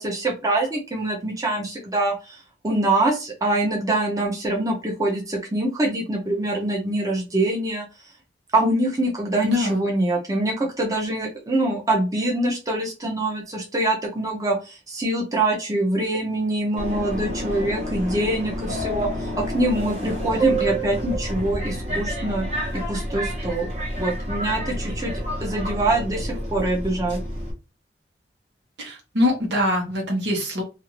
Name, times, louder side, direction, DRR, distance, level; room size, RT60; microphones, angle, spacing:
voice 1, 0.0-2.4 2.6-7.8 8.5-22.5 22.9-23.7 24.0-27.2, right 1 dB, 20° right, -1 dB, 0.7 m, -24 dB
voice 2, 9.4-9.8 28.8-30.6, left 1 dB, 80° right, 0 dB, 1.1 m, -23 dB
Subway metro underground, 16.8-27.5, right 1 dB, 35° right, 1.0 m, -29 dB
2.6 x 2.5 x 3.0 m, 0.30 s
head